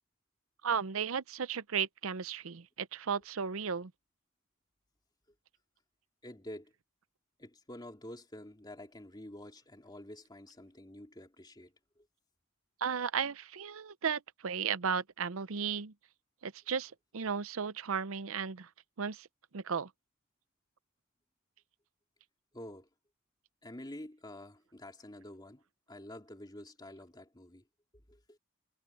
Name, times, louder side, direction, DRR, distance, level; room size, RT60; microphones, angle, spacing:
voice 1, 0.6-3.9 12.8-15.9 16.4-18.7 19.0-19.3 19.5-19.9, right 6 dB, 75° right, 0.7 m, -35 dB
voice 2, 6.2-6.7 7.4-12.1 22.5-22.9 23.6-25.6 25.9-27.6 28.1-28.4, left 1 dB, 20° left, 3.0 m, -48 dB
head